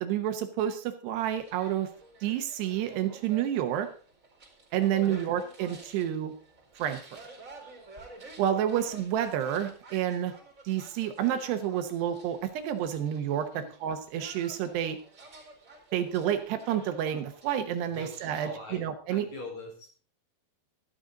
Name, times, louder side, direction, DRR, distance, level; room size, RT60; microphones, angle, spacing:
voice 1, 0.0-1.9 2.2-3.9 4.7-6.3 6.8-7.2 8.4-10.3 10.7-15.0 15.9-19.3, right 10 dB, 75° right, 8 dB, 3.1 m, -29 dB
sound 1, 1.2-18.5, right 2 dB, 20° right, 4.6 m, -51 dB
voice 2, 18.4-18.8 19.1-19.9, left 2 dB, 40° left, 1 dB, 5.1 m, -42 dB
13.5 x 12.5 x 3.8 m, 0.38 s
omnidirectional pair, 5.0 m